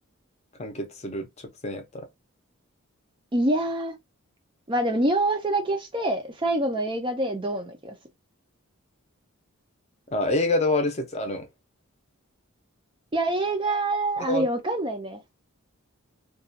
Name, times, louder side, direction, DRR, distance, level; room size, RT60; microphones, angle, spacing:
voice 1, 0.6-2.1 10.1-11.5 14.2-14.5, left 2 dB, 30° left, 0.6 m, -27 dB
voice 2, 3.3-4.0 4.7-8.0 13.1-15.2, right 1 dB, 20° right, 0.4 m, -26 dB
2.4 x 2.3 x 2.6 m
head